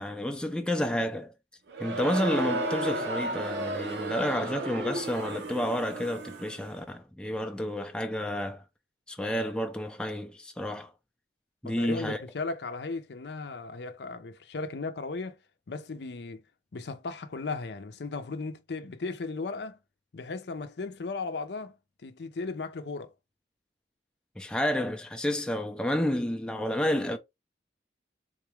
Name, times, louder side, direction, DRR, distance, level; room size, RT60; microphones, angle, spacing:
voice 1, 0.0-1.3 1.8-8.6 9.1-10.9 11.6-12.2 24.4-27.2, left 1 dB, 5° left, 0.4 m, -30 dB
Crowd, 1.7-6.7, right 2 dB, 70° right, 0.8 m, -33 dB
voice 2, 11.6-15.4 15.7-16.4 16.7-19.8 20.1-21.7 22.0-23.1, left 3 dB, 70° left, 0.5 m, -36 dB
3.7 x 2.3 x 3.1 m
head